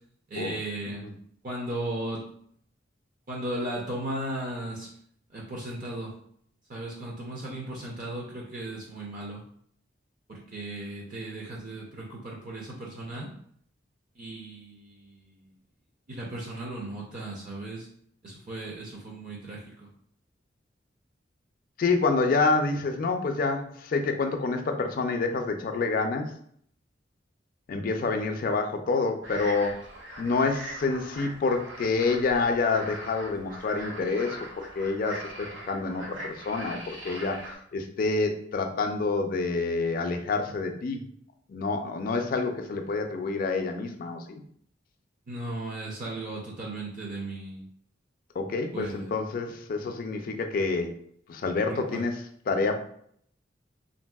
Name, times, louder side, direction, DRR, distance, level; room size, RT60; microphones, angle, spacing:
voice 1, 0.3-1.0 1.4-2.2 3.3-4.9 5.3-6.1 6.7-9.4 10.3-13.3 14.2-15.4 16.1-17.9 18.2-19.9 45.3-47.6 48.7-49.1 51.7-52.0, right 1 dB, 45° right, -3 dB, 0.5 m, -36 dB
voice 2, 21.8-26.3 27.7-29.8 30.2-37.4 37.7-41.0 41.5-44.4 48.4-51.0 51.3-52.2 52.5-52.7, left 3 dB, 50° left, 5 dB, 0.3 m, -28 dB
sound 1, 29.2-37.6, right 1 dB, 85° right, 0.9 m, -41 dB
3.2 x 2.6 x 2.2 m, 0.63 s
head